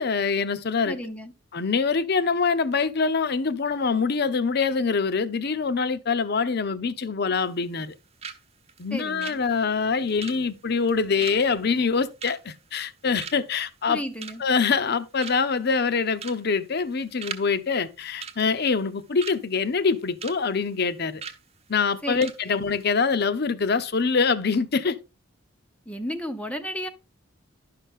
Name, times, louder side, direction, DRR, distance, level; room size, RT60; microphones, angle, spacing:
voice 1, 0.0-1.0 1.5-7.9 8.8-14.0 14.4-21.2 21.7-25.0, left 5 dB, 55° left, 0.7 m, -24 dB
voice 2, 0.8-1.3 8.9-9.4 13.9-14.4 22.0-22.2 22.5-22.6 25.9-26.9, equal, 5° left, 0.6 m, -33 dB
sound 1, 7.3-7.9 8.2-8.4 8.7-12.9 13.2-13.6 14.0-14.6 14.9-15.0 15.2-15.6 16.1-16.4 16.7-17.5 17.7-17.9 18.2-19.4 19.8-20.4 20.7-20.8 21.2-21.4 21.8-21.9 22.2-22.4 22.7-22.8, right 6 dB, 35° right, 1.0 m, -39 dB
11.0 x 5.7 x 3.6 m
head